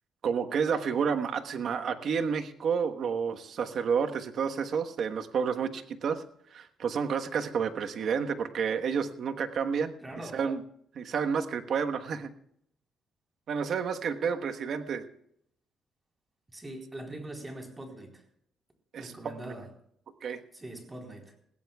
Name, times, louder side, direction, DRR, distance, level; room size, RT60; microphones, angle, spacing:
voice 1, 0.2-6.2 6.5-9.9 10.3-10.6 10.9-12.3 13.5-15.0 18.9-19.5 20.2-20.4, right 6 dB, 60° right, 7 dB, 1.2 m, -30 dB
voice 2, 10.0-10.4 16.5-18.2 18.9-19.7 20.5-21.3, right 1 dB, 20° right, 3 dB, 4.0 m, -42 dB
21.0 x 16.5 x 2.3 m, 0.70 s
cardioid pair, 90°, 0 cm